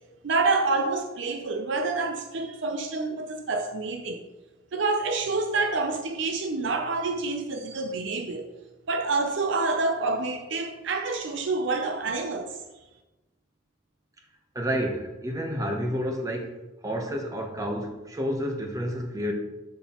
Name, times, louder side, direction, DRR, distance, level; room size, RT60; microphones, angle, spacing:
voice 1, 0.2-4.2 4.7-8.5 8.9-12.6, right 3 dB, 60° right, 0.5 m, -27 dB
voice 2, 14.5-16.5 16.8-19.3, equal, 15° right, 0.9 m, -30 dB
7.8 x 5.9 x 3.0 m
head